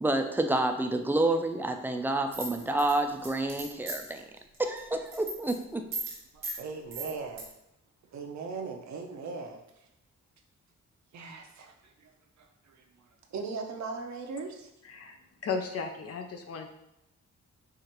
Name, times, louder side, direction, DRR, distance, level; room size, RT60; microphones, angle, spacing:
voice 1, 0.0-4.2 4.6-5.8, right 2 dB, 5° right, 5 dB, 0.3 m, -28 dB
sound 1, 2.3-4.2 4.5-4.8 5.1-5.5 5.9-6.2 6.4-6.6 6.9-7.4, right 3 dB, 85° right, 1.4 m, -37 dB
voice 2, 6.3-7.5 8.1-9.6 11.1-13.0 13.3-14.7, right 4 dB, 70° right, 3 dB, 0.7 m, -39 dB
voice 3, 14.8-15.2 15.4-16.7, left 5 dB, 55° left, 5 dB, 0.4 m, -35 dB
4.7 x 2.4 x 2.9 m, 0.85 s
cardioid pair, 80°, 29 cm